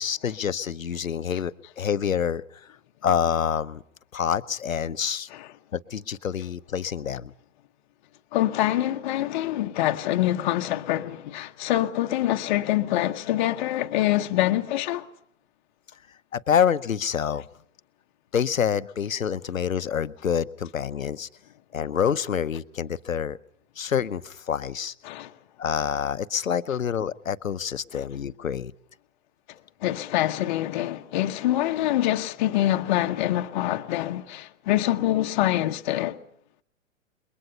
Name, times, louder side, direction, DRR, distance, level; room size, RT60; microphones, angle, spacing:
voice 1, 0.0-2.4 3.0-3.8 4.1-5.3 5.7-7.3 16.3-17.5 18.3-21.3 21.7-23.4 23.8-24.9 25.6-28.7, left 8 dB, 75° left, 0.8 m, -27 dB
voice 2, 8.3-15.1 25.0-25.3 29.8-36.2, left 14 dB, 35° left, 0.9 m, -25 dB
27.5 x 22.0 x 5.6 m
figure-of-eight pair, 115°, 40 cm